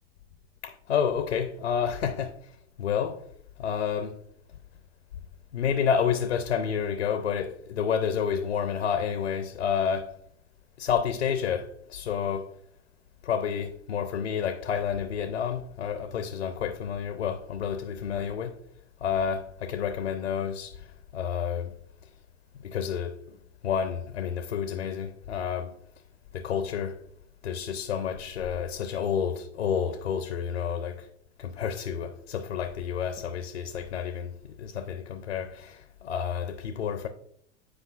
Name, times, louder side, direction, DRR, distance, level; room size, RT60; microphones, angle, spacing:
voice 1, 0.6-2.3 2.8-3.2 3.6-4.2 5.5-10.1 10.8-12.5 13.2-18.6 19.0-20.8 21.1-21.7 22.6-23.4 23.6-25.7 26.3-27.0 27.4-31.1 31.4-34.3 34.6-37.1, left 7 dB, 85° left, 0.5 m, -29 dB
8.4 x 4.7 x 2.4 m
figure-of-eight pair, 85°, 34 cm